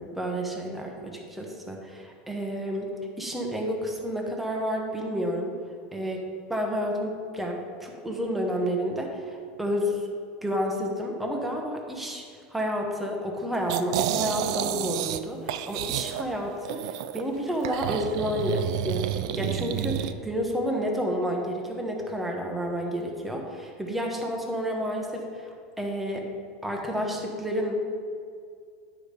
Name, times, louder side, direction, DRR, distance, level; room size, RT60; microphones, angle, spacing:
voice 1, 0.0-2.9 3.2-5.5 5.9-6.2 6.5-10.0 10.4-12.2 12.5-26.2 26.6-27.7, equal, 5° right, 0 dB, 0.9 m, -30 dB
sound 1, 13.7-15.2 15.5-17.2 17.6-20.1, right 11 dB, 70° right, 0.4 m, -30 dB
10.5 x 4.9 x 5.1 m, 2.2 s
supercardioid pair, 165°, 3 cm